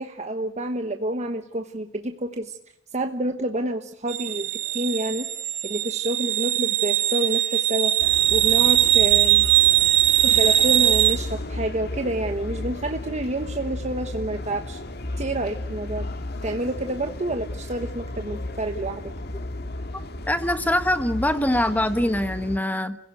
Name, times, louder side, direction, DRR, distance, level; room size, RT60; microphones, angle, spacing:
voice 1, 0.0-2.6 2.9-5.3 5.6-8.0 8.3-9.5 10.2-14.8 15.2-16.1 16.4-19.1, right 1 dB, 35° right, 5 dB, 1.2 m, -28 dB
sound 1, 4.1-11.1, right 13 dB, 80° right, 4.3 m, -20 dB
sound 2, 8.0-22.6, left 1 dB, 55° left, 1.9 m, -34 dB
voice 2, 20.3-23.0, left 1 dB, 10° left, 10 dB, 1.1 m, -23 dB
29.5 x 16.5 x 9.2 m, 0.78 s
head